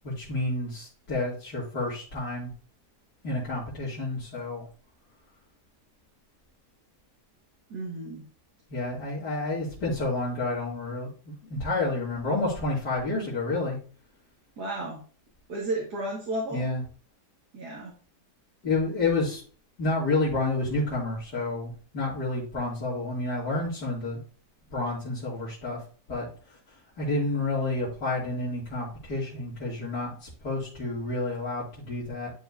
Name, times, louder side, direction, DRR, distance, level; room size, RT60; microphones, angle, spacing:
voice 1, 0.0-2.5 3.2-4.6 8.7-13.8 16.5-16.8 18.6-19.4 19.8-24.2 24.7-25.8 26.1-26.3 27.0-32.3, left 2 dB, 75° left, -8 dB, 3.4 m, -29 dB
voice 2, 7.7-8.3 14.6-15.0 15.5-16.7 17.5-17.9, right 1 dB, 70° right, -2 dB, 2.4 m, -33 dB
12.0 x 4.9 x 2.7 m, 0.40 s
omnidirectional pair, 1.8 m